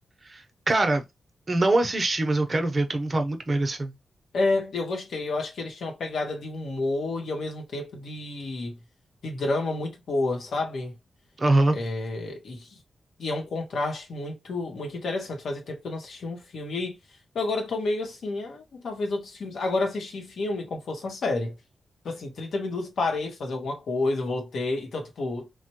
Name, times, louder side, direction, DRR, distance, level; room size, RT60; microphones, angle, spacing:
voice 1, 0.7-1.0 1.5-3.9 11.4-11.8, right 2 dB, 40° right, 0.7 m, -23 dB
voice 2, 4.3-8.8 9.2-10.9 11.7-12.7 13.2-17.0 17.3-21.5 22.0-25.5, left 2 dB, 80° left, 0.9 m, -30 dB
3.2 x 2.2 x 2.9 m
cardioid pair, 70°, 0 cm